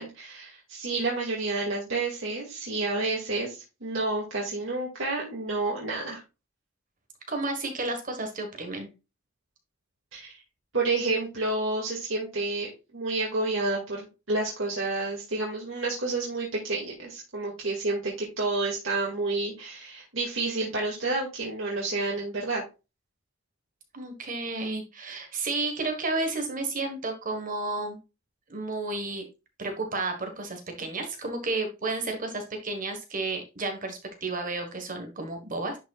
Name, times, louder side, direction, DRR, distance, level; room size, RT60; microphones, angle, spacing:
voice 1, 0.0-6.2 10.1-10.4 10.7-22.6, right 3 dB, 70° right, -3 dB, 2.3 m, -30 dB
voice 2, 7.3-8.9 23.9-28.0 28.5-29.2 29.6-35.8, right 3 dB, 40° right, 5 dB, 1.5 m, -32 dB
11.0 x 5.4 x 2.4 m, 0.28 s
head